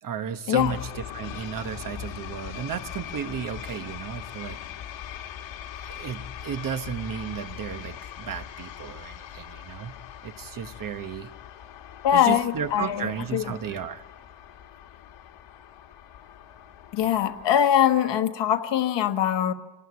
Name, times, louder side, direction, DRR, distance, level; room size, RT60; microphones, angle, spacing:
voice 1, 0.0-4.6 5.8-9.9 10.2-11.3 12.1-14.0, right 7 dB, 45° right, 10 dB, 1.2 m, -34 dB
sound 1, 0.6-17.5, left 9 dB, 85° left, 1.9 m, -41 dB
voice 2, 12.0-13.5 16.9-19.5, left 10 dB, 70° left, 9 dB, 1.5 m, -22 dB
26.0 x 19.0 x 9.6 m, 1.2 s
cardioid pair, 165°, 44 cm